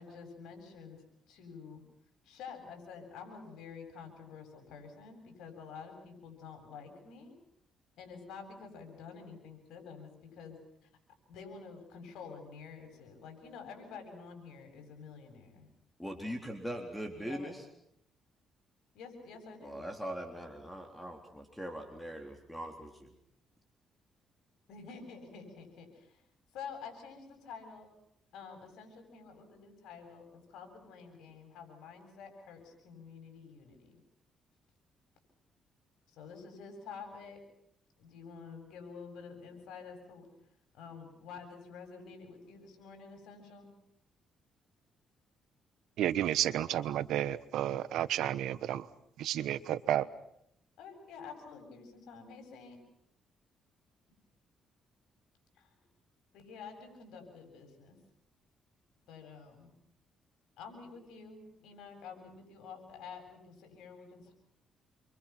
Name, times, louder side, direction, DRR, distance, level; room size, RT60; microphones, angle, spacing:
voice 1, 0.0-1.8 2.2-7.3 8.0-10.9 11.3-15.7 17.2-17.5 18.9-19.8 24.7-26.2 26.5-27.9 28.3-34.0 36.1-37.4 38.0-40.3 40.7-43.7 50.8-52.8 55.5-55.8 56.3-58.0 59.1-59.7 60.6-64.3, left 5 dB, 85° left, 7.7 m, -49 dB
voice 2, 16.0-17.6 19.6-23.1, equal, 5° left, 3.7 m, -41 dB
voice 3, 46.0-48.8 49.2-50.1, right 12 dB, 85° right, 1.2 m, -31 dB
28.5 x 24.5 x 6.1 m
cardioid pair, 90°, 0 cm